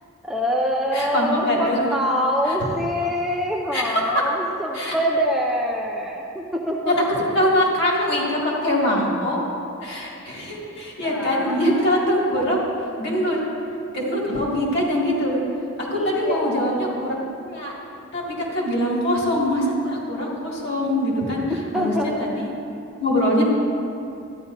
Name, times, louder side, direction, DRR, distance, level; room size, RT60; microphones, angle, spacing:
voice 1, 0.2-7.1 11.1-12.5 15.9-16.9 21.7-22.3, equal, ahead, -2 dB, 0.4 m, -25 dB
voice 2, 0.9-1.8 3.7-3.9 4.7-5.0 6.9-7.0 7.3-9.4 9.8-12.6 13.0-13.4 13.9-15.4 15.8-17.7 18.1-21.4 21.7-22.5 23.0-23.4, left 1 dB, 50° left, -4 dB, 2.0 m, -23 dB
12.5 x 10.5 x 2.6 m, 2.6 s
head